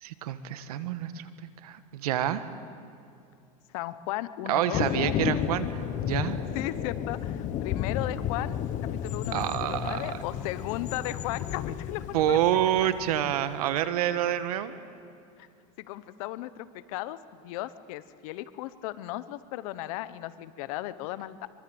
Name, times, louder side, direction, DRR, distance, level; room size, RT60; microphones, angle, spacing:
voice 1, 0.0-2.5 4.5-6.4 9.3-10.2 12.1-14.7, right 11 dB, 85° right, 12 dB, 1.5 m, -28 dB
voice 2, 3.7-5.1 6.5-12.9 14.3-14.4 15.4-15.5 15.8-17.2 17.4-21.5, left 15 dB, 70° left, 14 dB, 1.1 m, -36 dB
Thunder, 4.7-13.7, left 9 dB, 40° left, 1.4 m, -32 dB
24.5 x 23.0 x 8.0 m, 2.5 s
supercardioid pair, 135°, 19 cm